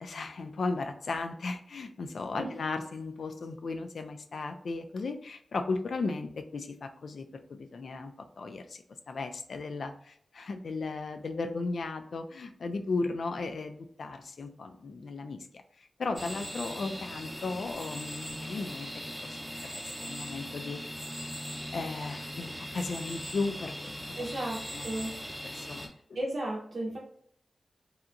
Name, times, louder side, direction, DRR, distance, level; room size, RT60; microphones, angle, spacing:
voice 1, 0.0-15.4 15.8-18.9 19.2-19.3 20.0-20.8 21.7-23.8 24.7-24.9 25.4-25.9, left 3 dB, 80° left, 7 dB, 0.3 m, -35 dB
sound 1, 16.2-25.9, equal, ahead, 0.6 m, -40 dB
voice 2, 24.2-25.4 26.1-27.0, right 1 dB, 60° right, -4 dB, 0.6 m, -35 dB
2.8 x 2.3 x 2.4 m, 0.63 s
cardioid pair, 55°, 0 cm